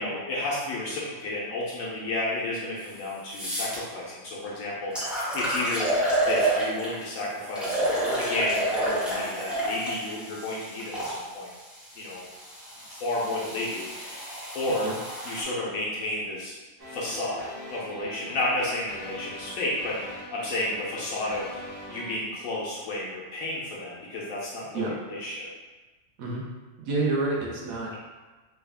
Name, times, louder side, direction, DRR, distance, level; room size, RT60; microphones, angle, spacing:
voice 1, 0.0-5.9 6.2-11.5 12.0-12.3 12.9-14.2 14.5-14.9 15.2-16.6 16.9-21.5 21.9-25.5, left 2 dB, 75° left, -5 dB, 1.0 m, -31 dB
sound 1, 2.8-2.9 3.3-3.8 4.5-4.6 4.9-7.0 7.5-11.2 12.0-15.4, right 1 dB, ahead, 0.5 m, -29 dB
sound 2, 16.8-22.2, equal, 45° right, 1.1 m, -42 dB
voice 2, 26.8-28.0, right 3 dB, 85° right, -3 dB, 1.2 m, -28 dB
3.5 x 2.3 x 3.4 m, 1.2 s
omnidirectional pair, 1.4 m